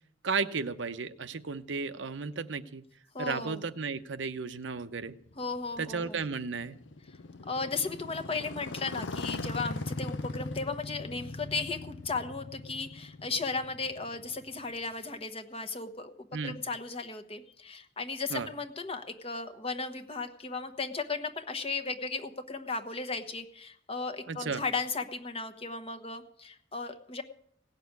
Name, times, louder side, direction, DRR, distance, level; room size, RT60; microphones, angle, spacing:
voice 1, 0.2-2.8 3.2-5.1 5.8-6.8 16.3-16.6 18.3-18.5 24.3-24.6, right 4 dB, 85° right, 11 dB, 0.7 m, -34 dB
voice 2, 3.1-3.6 5.4-6.2 7.5-27.2, left 4 dB, 30° left, 6 dB, 1.1 m, -36 dB
Motorcycle, 5.0-14.9, left 3 dB, 85° left, 0.7 m, -40 dB
17.5 x 6.7 x 9.5 m, 0.68 s
head